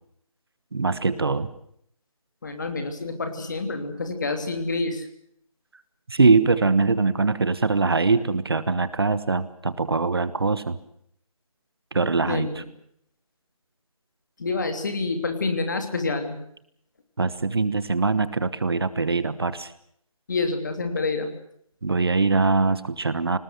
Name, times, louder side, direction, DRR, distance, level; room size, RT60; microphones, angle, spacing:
voice 1, 0.7-1.5 6.1-10.8 11.9-12.6 17.2-19.7 21.8-23.4, right 4 dB, 45° right, 15 dB, 1.2 m, -22 dB
voice 2, 2.4-5.1 12.3-12.6 14.4-16.4 20.3-21.3, left 3 dB, 35° left, 7 dB, 3.0 m, -27 dB
23.0 x 19.5 x 8.0 m, 0.69 s
figure-of-eight pair, 170°, 18 cm